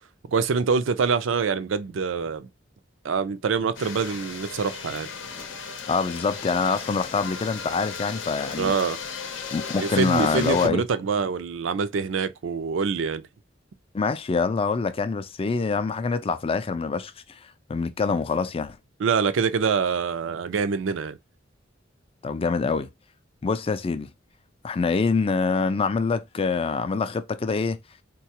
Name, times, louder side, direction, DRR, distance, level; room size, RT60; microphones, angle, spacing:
voice 1, 0.3-2.5 3.0-5.1 8.6-9.0 9.8-13.2 19.0-21.2, right 5 dB, 75° right, 0.4 m, -25 dB
sound 1, 3.7-10.7, left 5 dB, 75° left, 0.7 m, -36 dB
voice 2, 5.9-8.7 9.5-10.8 13.9-17.4 17.7-18.8 22.2-22.9 23.4-24.1 24.6-27.8, left 4 dB, 30° left, 0.4 m, -25 dB
3.8 x 2.2 x 2.8 m
head